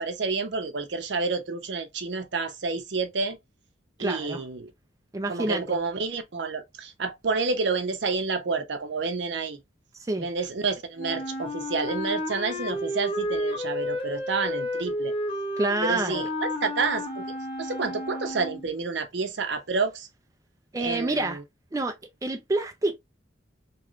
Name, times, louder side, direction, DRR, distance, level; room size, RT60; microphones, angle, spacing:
voice 1, 0.0-3.4 4.0-4.7 5.3-9.6 10.2-15.1 15.8-17.2 17.6-20.1 20.8-21.4, right 4 dB, 65° right, 0.6 m, -29 dB
voice 2, 4.0-4.4 5.1-5.8 10.0-10.3 15.6-16.3 20.7-21.4 21.7-22.0 22.2-23.0, right 2 dB, 20° right, 0.4 m, -27 dB
Wind instrument woodwind instrument, 11.0-18.7, left 1 dB, 30° left, 0.6 m, -31 dB
3.1 x 3.0 x 2.4 m
head